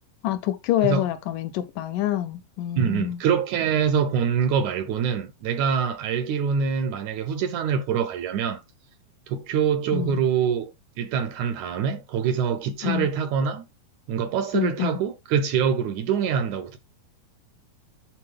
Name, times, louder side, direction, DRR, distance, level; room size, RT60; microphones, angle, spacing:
voice 1, 0.2-3.2 9.9-10.2 12.8-13.1 14.5-15.0, left 12 dB, 75° left, 2.1 m, -26 dB
voice 2, 2.8-8.6 9.3-13.7 14.1-16.8, right 7 dB, 75° right, 1.8 m, -25 dB
10.5 x 4.3 x 3.4 m
omnidirectional pair, 4.0 m